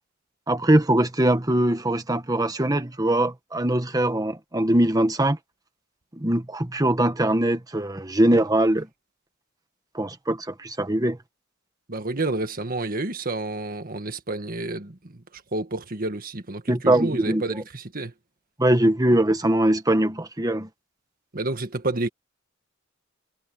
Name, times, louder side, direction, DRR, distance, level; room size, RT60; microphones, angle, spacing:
voice 1, 0.5-5.4 6.2-8.9 9.9-11.2 16.7-17.6 18.6-20.7, right 1 dB, 20° right, 1.4 m, -22 dB
voice 2, 11.9-18.1 21.3-22.1, right 2 dB, 45° right, 1.7 m, -30 dB
head